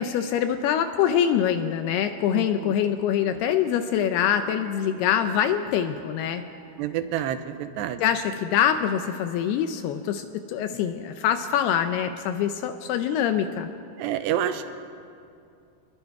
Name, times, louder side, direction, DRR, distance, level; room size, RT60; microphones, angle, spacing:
voice 1, 0.0-6.4 8.0-13.7, left 9 dB, 80° left, 8 dB, 2.3 m, -24 dB
voice 2, 2.3-2.8 6.8-8.0 14.0-14.7, right 10 dB, 80° right, 10 dB, 2.7 m, -28 dB
Wind instrument woodwind instrument, 3.2-7.3, right 8 dB, 30° left, 4.2 m, -50 dB
28.0 x 21.0 x 4.7 m, 2.4 s
omnidirectional pair, 5.4 m